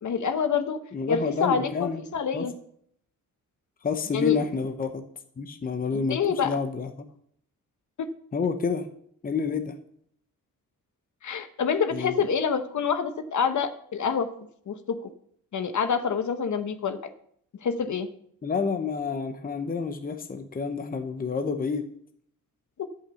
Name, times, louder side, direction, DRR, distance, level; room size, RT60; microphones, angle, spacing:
voice 1, 0.0-0.8 1.1-2.5 4.1-4.4 5.9-6.5 8.0-8.1 11.2-14.3 14.7-15.1 15.5-17.0 17.6-18.1 22.8-22.9, left 6 dB, 55° left, 9 dB, 1.0 m, -27 dB
voice 2, 0.9-2.0 2.3-2.5 3.8-5.0 5.4-7.1 8.3-8.9 9.2-9.7 11.9-12.2 18.4-21.9, left 5 dB, 25° left, 7 dB, 0.8 m, -29 dB
11.0 x 5.8 x 7.0 m, 0.66 s
wide cardioid pair, 140°, 34 cm